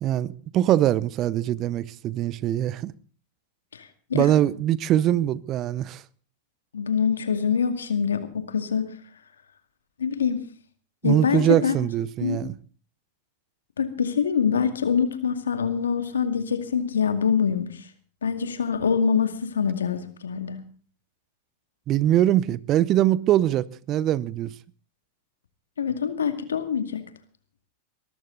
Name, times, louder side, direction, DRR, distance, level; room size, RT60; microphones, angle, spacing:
voice 1, 0.0-2.9 4.1-6.0 11.0-12.5 21.9-24.5, right 12 dB, 40° right, 0.8 m, -22 dB
voice 2, 3.7-4.3 6.7-8.9 10.0-10.4 11.0-11.7 12.2-12.4 13.8-17.8 18.2-20.6 25.8-27.0, left 6 dB, 85° left, 2.2 m, -25 dB
23.0 x 13.5 x 4.0 m
hypercardioid pair, 95°, 0 cm